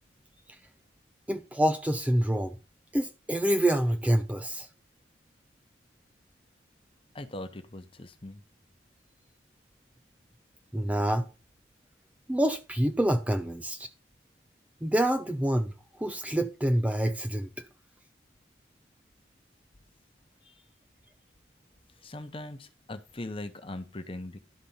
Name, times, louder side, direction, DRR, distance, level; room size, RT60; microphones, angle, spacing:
voice 1, 1.3-2.5 2.9-4.7 10.7-11.3 12.3-13.9 14.8-15.7 16.0-17.5, right 1 dB, 5° right, 0.4 m, -26 dB
voice 2, 7.1-8.4 20.4-20.6 22.0-24.4, left 1 dB, 30° left, 0.9 m, -40 dB
12.0 x 4.1 x 5.6 m
head